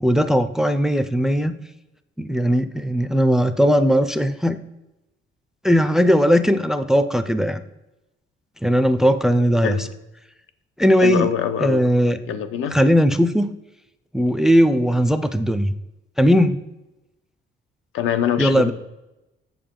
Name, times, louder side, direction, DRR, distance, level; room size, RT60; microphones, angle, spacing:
voice 1, 0.0-1.6 2.2-4.6 5.6-7.6 8.6-9.8 10.8-11.3 11.6-12.2 12.7-13.5 14.1-15.7 16.2-16.6 18.4-18.7, equal, ahead, 11 dB, 0.3 m, -18 dB
voice 2, 11.0-11.8 12.3-12.8 17.9-18.7, left 9 dB, 90° left, 9 dB, 0.8 m, -24 dB
7.7 x 6.9 x 3.7 m, 0.96 s
cardioid pair, 160°, 20 cm